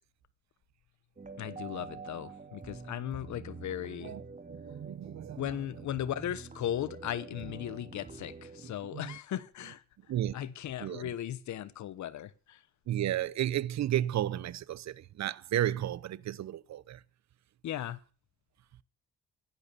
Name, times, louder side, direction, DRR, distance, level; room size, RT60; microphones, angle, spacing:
sound 1, 1.2-8.7, right 4 dB, 25° right, 2.6 m, -46 dB
voice 1, 1.4-4.2 5.4-9.8 10.3-12.6 17.6-18.0, left 11 dB, 70° left, 1.1 m, -37 dB
voice 2, 4.5-5.6 8.6-9.2 10.1-10.4 10.8-11.1 12.9-17.0, right 12 dB, 65° right, 0.9 m, -33 dB
16.0 x 11.5 x 6.9 m
cardioid pair, 90°, 30 cm